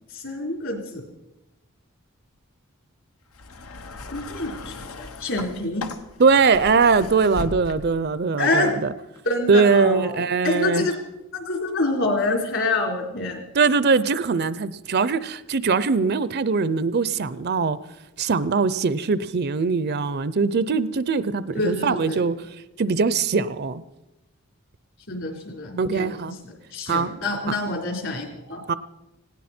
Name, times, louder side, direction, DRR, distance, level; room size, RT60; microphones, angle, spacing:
voice 1, 0.1-1.0 4.1-5.9 8.4-8.7 9.2-11.0 11.3-13.4 21.5-22.2 25.1-28.6, left 2 dB, 60° left, 2 dB, 4.0 m, -27 dB
sound 1, 3.3-8.1 9.1-9.2, left 2 dB, 85° left, 1.1 m, -37 dB
voice 2, 6.2-8.9 9.5-10.9 13.5-17.8 18.2-22.3 22.8-23.8 25.8-26.3 26.9-27.1 27.5-27.6 28.7-28.8, right 4 dB, 50° right, 16 dB, 0.5 m, -21 dB
19.0 x 17.0 x 4.4 m, 0.96 s
head